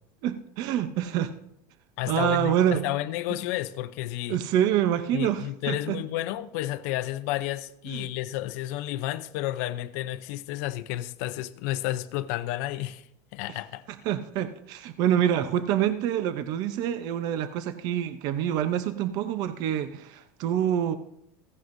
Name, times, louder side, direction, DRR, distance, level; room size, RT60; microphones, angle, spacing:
voice 1, 0.2-1.3 2.1-2.8 4.3-6.0 7.9-8.1 14.0-20.9, right 10 dB, 45° right, 0.7 m, -26 dB
voice 2, 2.0-4.4 5.1-13.1 13.3-13.8, left 15 dB, 65° left, 0.6 m, -31 dB
15.5 x 11.0 x 2.6 m
supercardioid pair, 155°, 9 cm